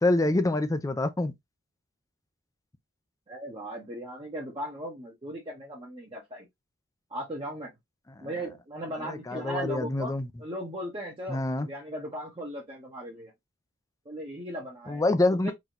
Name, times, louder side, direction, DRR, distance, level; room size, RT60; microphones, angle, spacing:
voice 1, 0.0-1.3 8.2-8.3 9.0-10.3 11.3-11.7 14.9-15.5, left 2 dB, 15° left, 0.5 m, -26 dB
voice 2, 3.3-6.5 7.1-7.7 8.2-10.1 10.4-13.3 14.0-15.2 15.4-15.5, right 1 dB, 25° right, 1.0 m, -37 dB
4.0 x 2.8 x 3.0 m
head